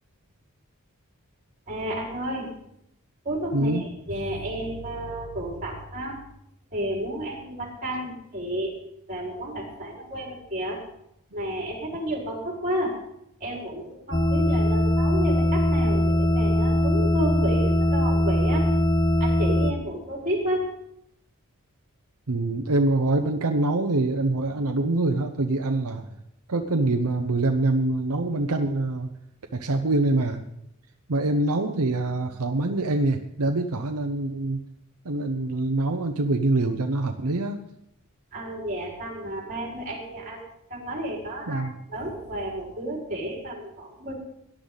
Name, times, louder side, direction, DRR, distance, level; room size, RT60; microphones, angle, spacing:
voice 1, 1.7-2.5 3.2-6.2 6.7-8.8 9.1-10.8 11.3-13.0 13.4-18.7 19.2-20.7 38.3-40.4 40.7-41.6 41.9-44.1, right 1 dB, 35° right, -2 dB, 5.2 m, -31 dB
voice 2, 3.5-3.9 22.3-26.1 26.5-29.1 29.5-30.4 31.1-34.6 35.0-37.6 41.5-41.8, right 2 dB, 80° right, 5 dB, 0.9 m, -25 dB
sound 1, 14.1-19.7, left 1 dB, 20° left, 0.8 m, -21 dB
18.0 x 11.5 x 4.1 m, 0.76 s
head